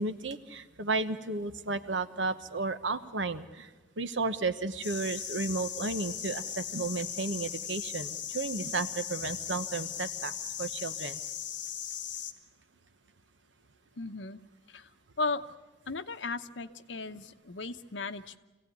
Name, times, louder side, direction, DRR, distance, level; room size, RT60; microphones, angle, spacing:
voice 1, 0.0-3.7 4.0-10.3 10.6-11.2, right 3 dB, 90° right, 10 dB, 1.2 m, -33 dB
sound 1, 4.8-12.3, left 9 dB, 65° left, 1.6 m, -38 dB
voice 2, 14.0-14.4 14.7-14.9 15.2-15.4 15.9-18.4, left 3 dB, 85° left, 8 dB, 0.9 m, -36 dB
25.5 x 16.5 x 9.5 m, 1.2 s
head